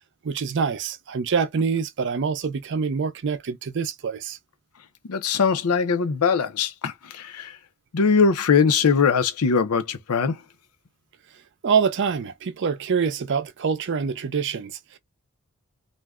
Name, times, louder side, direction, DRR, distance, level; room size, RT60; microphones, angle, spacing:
voice 1, 0.2-4.4 11.6-15.0, right 6 dB, 55° right, 0.4 m, -25 dB
voice 2, 5.1-7.6 7.9-10.4, left 5 dB, 85° left, 0.6 m, -21 dB
2.5 x 2.2 x 3.4 m
head